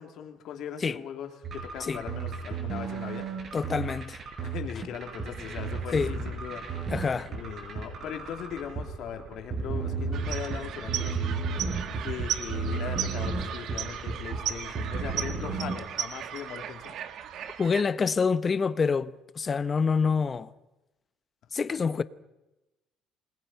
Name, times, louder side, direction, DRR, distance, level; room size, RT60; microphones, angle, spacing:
voice 1, 0.0-3.3 4.4-6.9 7.3-11.5 11.8-16.9, left 9 dB, 60° left, 3.0 m, -39 dB
sound 1, 1.4-15.8, right 4 dB, 40° right, 6.3 m, -34 dB
voice 2, 3.5-4.2 5.9-6.1 6.9-7.3 17.6-20.5 21.5-22.0, left 5 dB, 30° left, 0.8 m, -26 dB
sound 2, 10.1-17.8, right 9 dB, 60° right, 1.7 m, -36 dB
28.0 x 21.0 x 5.7 m
cardioid pair, 130°, 0 cm